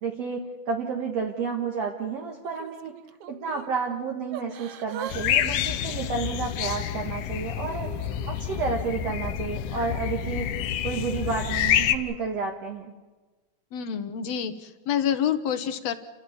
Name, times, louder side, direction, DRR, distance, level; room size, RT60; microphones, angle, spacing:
voice 1, 0.0-2.9 3.3-7.9 8.2-10.5 10.8-12.9, right 5 dB, 55° right, 1 dB, 2.5 m, -31 dB
Yell / Crying sobbing, 2.4-3.7 4.3-5.2 5.5-6.8 7.3-9.0 9.7-9.9, right 9 dB, 80° right, 1.3 m, -42 dB
sound 1, 5.1-12.0, left 10 dB, 80° left, 2.5 m, -28 dB
voice 2, 13.7-15.9, left 9 dB, 60° left, 10 dB, 2.0 m, -27 dB
29.5 x 14.0 x 8.8 m, 1.3 s
omnidirectional pair, 3.8 m